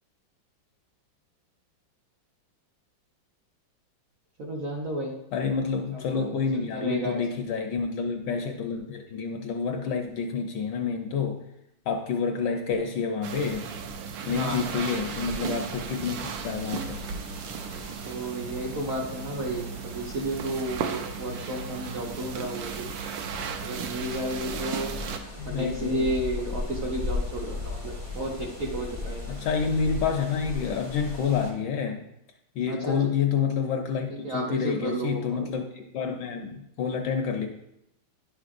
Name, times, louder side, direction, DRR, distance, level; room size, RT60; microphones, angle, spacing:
voice 1, 4.4-5.2 5.9-7.2 14.3-14.7 18.1-22.9 23.6-24.9 25.5-29.3 32.7-33.0 34.2-35.5, right 1 dB, 55° right, -2 dB, 1.0 m, -32 dB
voice 2, 5.3-11.4 11.9-13.7 14.2-17.0 25.4-26.1 29.3-32.0 32.6-37.5, left 6 dB, 70° left, 4 dB, 1.1 m, -28 dB
sound 1, 13.2-25.2, right 6 dB, 75° right, 1.3 m, -35 dB
sound 2, 14.8-31.5, left 3 dB, 20° right, 0.4 m, -39 dB
10.0 x 5.9 x 2.5 m, 0.82 s
omnidirectional pair, 2.2 m